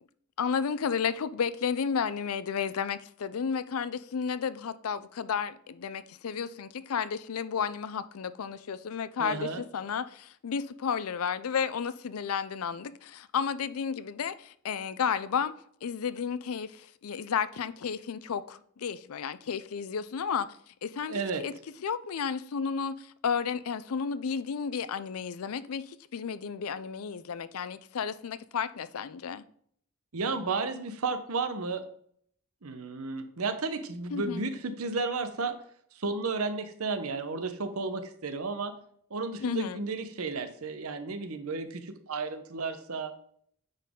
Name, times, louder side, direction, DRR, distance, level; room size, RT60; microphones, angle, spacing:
voice 1, 0.4-15.5 15.8-20.5 20.8-21.5 21.8-25.8 26.1-29.4 34.1-34.4 39.4-39.8, left 6 dB, 85° left, 0.5 m, -32 dB
voice 2, 9.2-9.6 21.1-21.5 30.1-31.9 32.6-35.6 35.9-38.8 39.1-43.1, right 4 dB, 85° right, 0.9 m, -33 dB
9.5 x 4.1 x 3.7 m
head